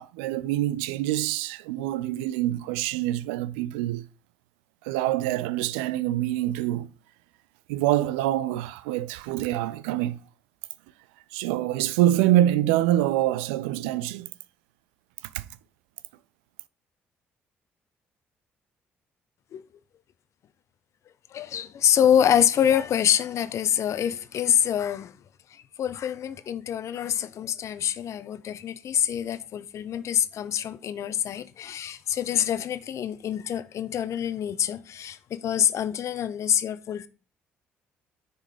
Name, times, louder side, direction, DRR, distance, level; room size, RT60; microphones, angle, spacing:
voice 1, 0.0-4.1 4.8-6.9 7.7-10.2 11.3-14.3 15.3-15.5, right 14 dB, 85° right, 0.4 m, -25 dB
voice 2, 21.3-25.2 25.5-37.1, left 9 dB, 60° left, 0.8 m, -26 dB
9.9 x 4.0 x 5.0 m
hypercardioid pair, 50°, 6 cm